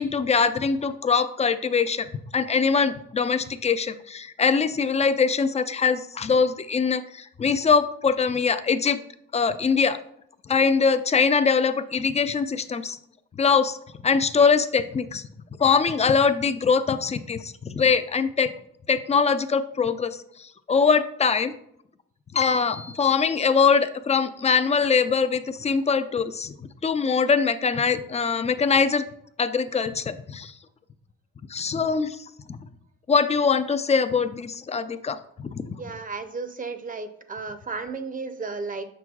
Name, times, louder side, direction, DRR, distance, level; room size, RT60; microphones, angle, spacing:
voice 1, 0.0-9.0 9.3-10.0 10.5-13.0 13.4-13.8 14.0-15.2 15.6-18.5 18.9-21.5 22.3-26.5 26.8-29.1 29.4-30.5 31.5-32.2 32.5-32.6 33.1-35.2 35.5-35.8, left 5 dB, 20° left, 11 dB, 0.4 m, -22 dB
voice 2, 35.8-38.9, right 4 dB, 30° right, 8 dB, 0.6 m, -33 dB
6.8 x 6.0 x 2.3 m, 0.72 s
cardioid pair, 90°, 30 cm